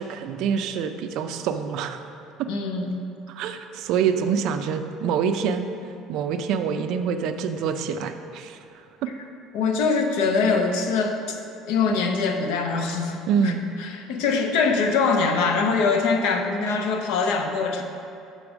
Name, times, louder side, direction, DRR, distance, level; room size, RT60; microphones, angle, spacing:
voice 1, 0.0-2.0 2.4-2.5 3.4-5.7 6.1-8.6 13.3-13.6, right 7 dB, 55° right, 8 dB, 0.3 m, -26 dB
voice 2, 2.5-3.0 9.5-11.4 11.7-13.5 13.8-17.8, left 4 dB, 70° left, 4 dB, 0.6 m, -23 dB
5.3 x 4.8 x 6.1 m, 2.6 s
cardioid pair, 175°, 0 cm